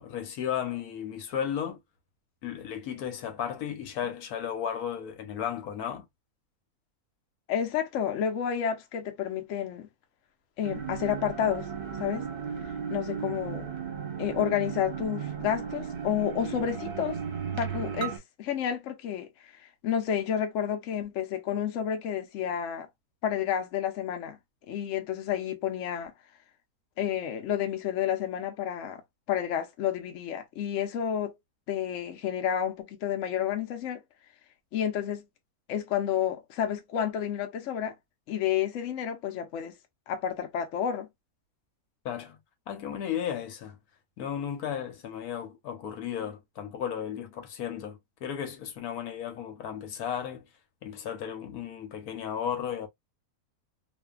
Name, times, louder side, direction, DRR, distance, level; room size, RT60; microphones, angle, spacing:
voice 1, 0.0-1.8 2.4-6.0 42.0-42.4 42.7-43.8 44.2-50.5 50.8-52.9, left 9 dB, 80° left, 1.2 m, -34 dB
voice 2, 7.5-9.9 10.6-11.7 12.0-12.3 12.9-13.7 14.2-17.2 17.5-22.9 23.2-24.4 24.7-26.1 27.0-29.0 29.3-31.3 31.7-34.0 34.7-35.2 35.7-37.9 38.3-39.7 40.1-41.1, left 9 dB, 65° left, 0.9 m, -30 dB
sound 1, 10.6-18.2, right 7 dB, 45° right, 0.9 m, -35 dB
2.7 x 2.5 x 2.2 m
omnidirectional pair, 1.6 m